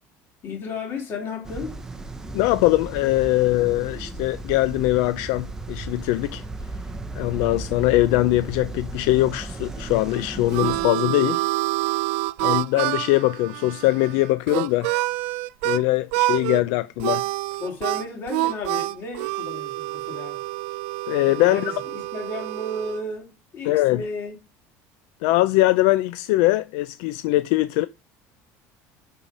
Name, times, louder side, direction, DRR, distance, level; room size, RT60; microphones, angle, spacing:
voice 1, 0.4-1.8 17.6-20.4 21.4-24.4, left 2 dB, 35° left, 3.1 m, -33 dB
sound 1, 1.4-10.9, right 2 dB, 10° right, 0.8 m, -35 dB
voice 2, 2.3-6.4 7.1-11.4 12.4-14.9 15.6-17.2 21.1-21.6 23.7-24.0 25.2-27.9, left 17 dB, 70° left, 0.5 m, -21 dB
Harmonica, 10.0-15.8 16.1-16.6 17.0-23.0, right 20 dB, 85° right, 0.4 m, -27 dB
7.1 x 5.6 x 5.2 m
cardioid pair, 175°, 6 cm